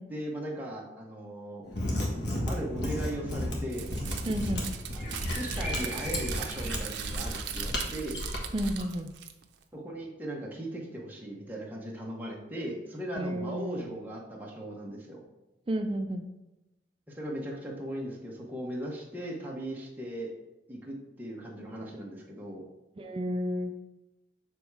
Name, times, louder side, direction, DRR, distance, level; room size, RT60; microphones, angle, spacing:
voice 1, 0.1-1.6 2.5-3.9 4.9-8.2 9.7-15.2 17.1-20.3 20.7-22.6, right 1 dB, 10° right, -3 dB, 1.1 m, -38 dB
Mechanisms, 1.6-8.8, left 1 dB, 65° left, 1.4 m, -33 dB
sound 1, 3.6-3.8 4.9-7.6, equal, 45° left, 1.3 m, -42 dB
Crumpling crinkling, 3.7-9.6, right 8 dB, 75° right, 0.6 m, -40 dB
voice 2, 4.3-4.7 8.5-9.1 13.2-13.9 15.7-16.3 23.0-23.7, equal, 30° right, 6 dB, 0.4 m, -31 dB
6.9 x 3.5 x 4.7 m, 0.97 s
head